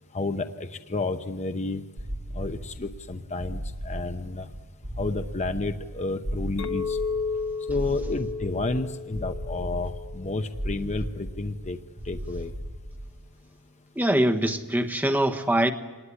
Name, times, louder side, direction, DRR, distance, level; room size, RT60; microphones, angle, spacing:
voice 1, 0.1-1.8 2.3-4.6 4.8-7.0 7.6-11.8 12.0-12.5, left 3 dB, 30° left, 7 dB, 0.8 m, -31 dB
sound 1, 2.0-13.3, equal, 40° right, 1.6 m, -36 dB
Chink clink, 6.6-11.1, left 5 dB, 60° left, 1.0 m, -34 dB
voice 2, 14.0-15.7, right 1 dB, 10° right, 7 dB, 1.3 m, -23 dB
25.5 x 19.5 x 9.9 m, 1.3 s
head